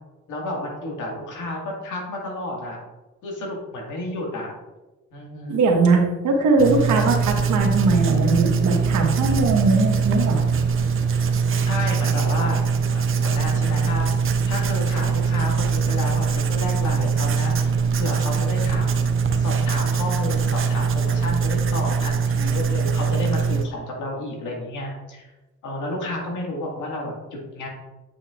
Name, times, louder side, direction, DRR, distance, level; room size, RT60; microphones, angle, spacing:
voice 1, 0.3-2.8 3.2-4.5 5.1-5.6 11.6-12.6 12.9-17.7 18.0-19.0 19.4-25.3 25.6-27.7, left 1 dB, 80° left, -1 dB, 1.9 m, -31 dB
voice 2, 5.5-10.4, right 3 dB, 75° right, 2 dB, 1.3 m, -20 dB
Writing, 6.6-23.6, right 5 dB, 45° right, 0.7 m, -22 dB
8.7 x 5.5 x 2.4 m, 1.1 s
cardioid pair, 90°, 30 cm